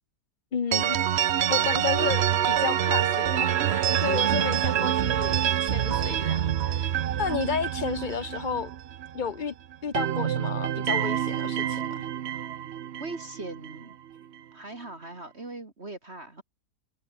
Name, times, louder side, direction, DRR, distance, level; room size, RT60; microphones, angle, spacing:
voice 1, 0.5-1.0 1.5-6.9 7.2-8.7 9.1-9.5 9.8-12.1, left 6 dB, 40° left, 0.7 m, -32 dB
sound 1, 0.7-9.4 9.7-13.8, right 10 dB, 65° right, 0.6 m, -26 dB
voice 2, 13.0-14.0 14.5-16.4, right 2 dB, 35° right, 2.9 m, -40 dB
omnidirectional pair, 1.9 m